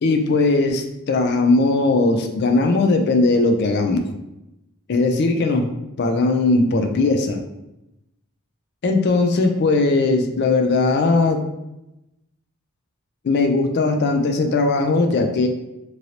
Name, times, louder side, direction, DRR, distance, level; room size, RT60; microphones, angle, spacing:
voice 1, 0.0-4.0 4.9-5.7 6.0-7.4 8.8-11.4 13.2-15.5, left 3 dB, 50° left, 5 dB, 0.3 m, -19 dB
3.1 x 2.6 x 2.8 m, 0.91 s
head